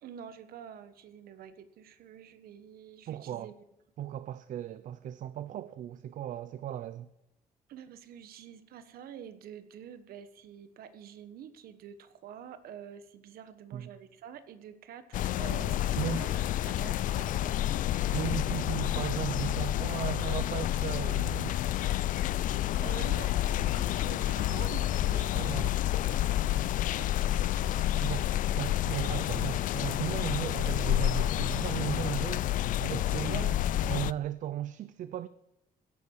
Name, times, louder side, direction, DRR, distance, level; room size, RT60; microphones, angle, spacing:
voice 1, 0.0-3.5 7.7-17.9 22.8-25.8 26.1-26.3 26.6-28.1, right 9 dB, 75° right, 1.3 m, -47 dB
voice 2, 3.1-3.5 4.0-7.1 13.7-13.9 15.5-15.6 16.0-16.2 18.1-21.6 25.3-25.7 28.0-28.3 28.5-32.5 32.8-33.6 33.8-35.3, right 11 dB, 55° right, 0.5 m, -36 dB
sound 1, 15.1-34.1, left 13 dB, 60° left, 0.4 m, -29 dB
16.5 x 10.5 x 4.7 m
cardioid pair, 175°, 16 cm